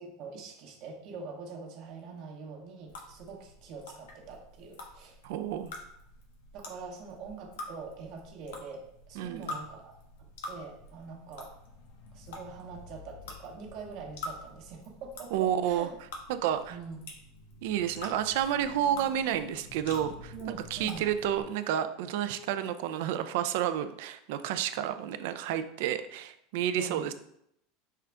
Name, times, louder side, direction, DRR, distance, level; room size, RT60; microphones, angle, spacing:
voice 1, 0.0-5.2 6.5-11.5 12.1-16.0 16.7-17.1 20.3-21.1 26.7-27.1, right 5 dB, 55° right, 2 dB, 0.9 m, -44 dB
sound 1, 2.9-21.4, left 2 dB, 85° left, 0.9 m, -47 dB
voice 2, 5.2-5.7 9.2-9.6 15.3-15.9 16.3-16.8 17.6-20.3 20.7-27.1, right 10 dB, 70° right, 10 dB, 0.4 m, -30 dB
5.5 x 2.5 x 3.3 m, 0.74 s
supercardioid pair, 135°, 0 cm